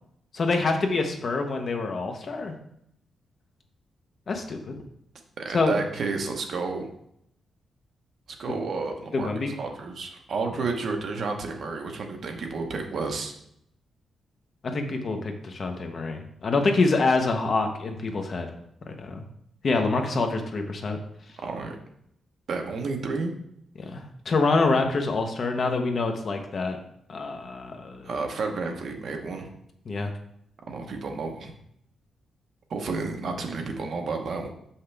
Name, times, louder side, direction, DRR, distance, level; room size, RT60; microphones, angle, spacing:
voice 1, 0.3-2.5 4.3-4.8 5.5-5.8 9.1-9.5 14.6-18.5 18.9-19.2 19.6-21.0 23.8-26.8 27.1-28.1 29.9-30.1, left 3 dB, 35° left, 4 dB, 0.8 m, -26 dB
voice 2, 5.4-6.9 8.4-9.3 9.6-13.3 21.4-21.8 22.5-23.3 28.0-29.5 30.7-31.5 32.7-34.5, right 4 dB, 50° right, 3 dB, 0.9 m, -31 dB
6.9 x 5.7 x 3.3 m, 0.73 s
wide cardioid pair, 170°, 0 cm